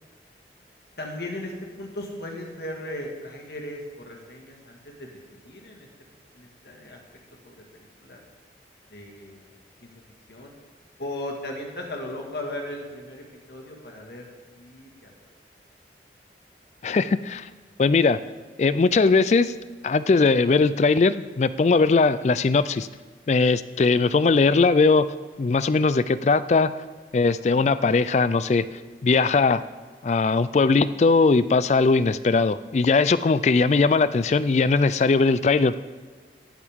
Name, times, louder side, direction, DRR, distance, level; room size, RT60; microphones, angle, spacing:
voice 1, 1.0-5.9 6.3-7.0 7.4-8.2 8.9-9.5 9.8-9.9 10.3-10.5 11.0-14.3 14.5-15.1, left 1 dB, 65° left, 0 dB, 1.8 m, -37 dB
voice 2, 16.8-17.5 17.8-18.2 18.6-19.5 19.8-22.9 23.3-25.1 25.4-26.7 27.1-28.7 29.0-29.6 30.0-35.7, left 4 dB, 40° left, 15 dB, 0.3 m, -20 dB
14.5 x 12.0 x 3.6 m, 1.5 s
head